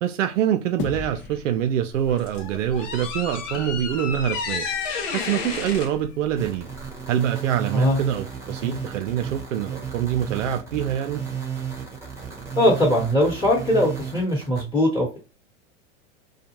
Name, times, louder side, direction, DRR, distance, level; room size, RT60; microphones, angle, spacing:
voice 1, 0.0-4.7 5.1-6.7 7.1-11.2, right 10 dB, 80° right, 0.6 m, -25 dB
sound 1, 0.8-3.4, left 6 dB, 35° left, 0.5 m, -37 dB
sound 2, 1.9-7.1, left 5 dB, 75° left, 0.8 m, -32 dB
sound 3, 6.4-14.6, right 7 dB, 5° right, 0.9 m, -33 dB
voice 2, 12.6-15.2, equal, 15° left, 1.1 m, -20 dB
2.4 x 2.2 x 2.8 m
hypercardioid pair, 100°, 37 cm